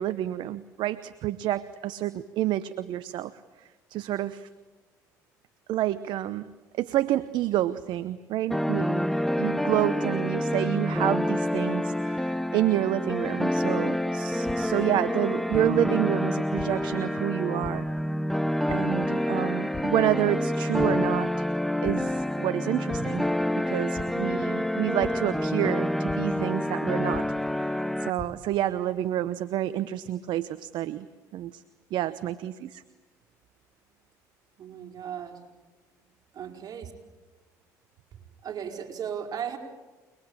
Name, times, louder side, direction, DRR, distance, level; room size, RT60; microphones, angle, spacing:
voice 1, 0.0-3.3 3.6-4.5 5.7-9.1 9.4-17.9 18.7-21.5 21.8-23.3 23.6-27.3 27.5-31.1 31.3-31.6 31.9-32.8, right 13 dB, 65° right, 14 dB, 0.9 m, -29 dB
sound 1, 8.5-28.1, left 1 dB, ahead, 0.9 m, -28 dB
sound 2, 14.4-14.5 15.5-15.6 16.6-16.7 17.6-17.7 18.7-18.8 19.7-19.8 20.3-20.5 20.8-20.9 21.8-21.9 22.9-23.0 23.9-24.0 25.0-25.1 26.1-26.2 27.1-27.2 27.9-28.3, left 4 dB, 30° left, 4.9 m, -38 dB
voice 2, 34.6-35.5 36.3-36.9 38.4-39.6, right 8 dB, 50° right, 2 dB, 5.1 m, -36 dB
28.5 x 21.0 x 8.9 m, 1.2 s
hypercardioid pair, 65°, 8 cm